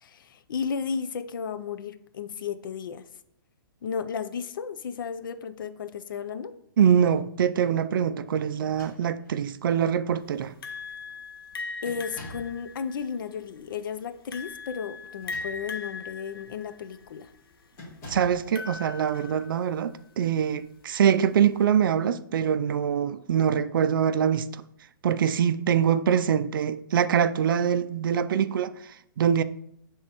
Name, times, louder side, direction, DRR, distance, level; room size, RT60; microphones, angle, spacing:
voice 1, 0.0-3.1 3.8-6.5 11.8-17.3, left 6 dB, 65° left, 0.5 m, -34 dB
voice 2, 6.8-10.6 18.1-24.6 25.0-29.4, right 8 dB, 70° right, 0.4 m, -24 dB
sound 1, 8.6-9.5 10.4-10.5 10.8-11.2 11.8-12.6 15.0-15.9 16.4-16.6 17.7-18.5, equal, 25° left, 1.7 m, -46 dB
sound 2, 10.6-19.9, left 4 dB, 90° left, 0.9 m, -40 dB
10.5 x 3.5 x 3.0 m
hypercardioid pair, 165°, 12 cm